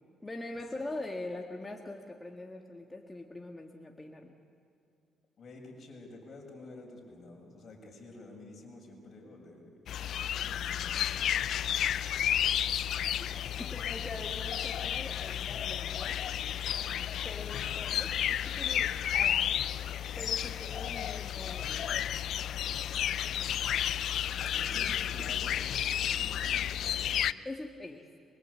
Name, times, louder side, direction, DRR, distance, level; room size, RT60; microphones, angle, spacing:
voice 1, 0.2-4.3 13.2-13.3 13.6-16.2 17.2-19.5 20.2-22.3 27.4-28.1, left 2 dB, 15° left, 2 dB, 1.9 m, -43 dB
voice 2, 5.4-11.1 17.5-17.8 23.3-23.8 24.4-27.2, left 2 dB, 45° left, 0 dB, 7.3 m, -50 dB
sound 1, 9.9-27.3, left 10 dB, 70° left, 0.5 m, -32 dB
25.0 x 23.5 x 8.5 m, 2.5 s
cardioid pair, 90°, 0 cm